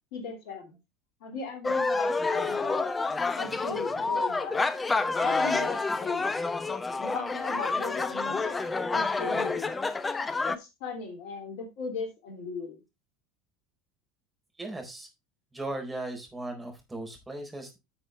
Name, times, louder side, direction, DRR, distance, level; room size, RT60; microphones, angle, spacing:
voice 1, 0.1-0.8 1.2-2.9 3.4-4.6 5.2-6.2 7.0-9.8 10.4-12.8, left 4 dB, 60° left, 3 dB, 2.8 m, -38 dB
sound 1, 1.6-10.6, left 3 dB, 20° left, 1.0 m, -28 dB
voice 2, 14.6-15.1 15.5-17.8, right 2 dB, 15° right, 3 dB, 4.4 m, -37 dB
11.5 x 6.4 x 3.4 m, 0.23 s
figure-of-eight pair, 70°, 0 cm